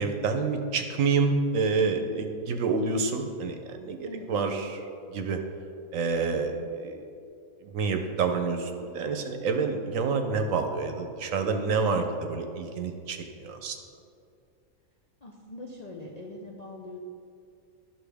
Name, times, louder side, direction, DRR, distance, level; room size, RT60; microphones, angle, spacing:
voice 1, 0.0-5.4 5.9-7.1 7.7-13.8, right 4 dB, 70° right, 6 dB, 1.1 m, -28 dB
voice 2, 15.2-17.0, left 2 dB, 45° left, -2 dB, 0.5 m, -42 dB
11.5 x 6.1 x 3.4 m, 2.5 s
omnidirectional pair, 1.5 m